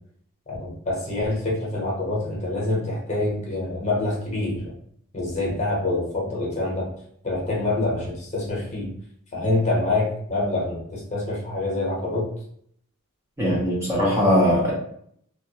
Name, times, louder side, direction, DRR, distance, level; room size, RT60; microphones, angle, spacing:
voice 1, 0.5-4.7 5.1-6.9 7.2-8.8 9.3-12.3, left 2 dB, 35° left, -4 dB, 0.8 m, -26 dB
voice 2, 13.4-14.7, equal, 15° right, -6 dB, 0.6 m, -20 dB
2.2 x 2.1 x 2.7 m, 0.67 s
head